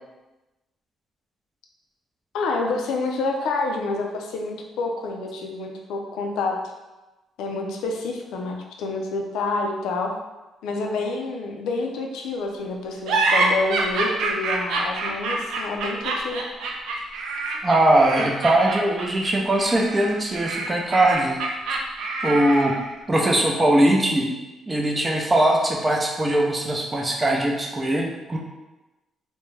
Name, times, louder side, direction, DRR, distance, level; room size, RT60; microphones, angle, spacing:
voice 1, 2.3-6.6 7.4-10.1 10.6-16.4, left 3 dB, 90° left, 2 dB, 0.3 m, -28 dB
sound 1, 13.1-22.9, right 3 dB, 85° right, 0.4 m, -26 dB
voice 2, 17.6-21.4 22.2-22.8 23.1-24.3 24.7-28.4, right 1 dB, 25° right, 0 dB, 0.5 m, -20 dB
2.3 x 2.1 x 3.1 m, 1.1 s
cardioid pair, 90°, 0 cm